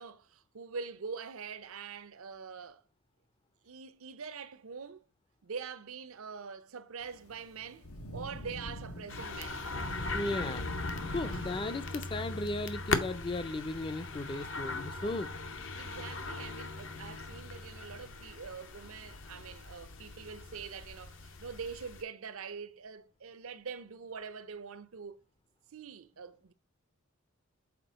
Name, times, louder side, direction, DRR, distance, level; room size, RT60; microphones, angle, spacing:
voice 1, 0.0-2.8 3.6-5.1 5.4-9.6 11.3-11.4 15.8-25.2 25.7-26.5, right 5 dB, 70° right, 0.6 m, -44 dB
Thunder / Rain, 7.0-19.4, left 1 dB, 85° left, 1.1 m, -45 dB
sound 1, 9.1-22.0, left 3 dB, 60° left, 0.7 m, -40 dB
voice 2, 10.1-10.7 11.1-15.3, left 2 dB, 20° left, 0.5 m, -36 dB
5.9 x 4.2 x 5.0 m
head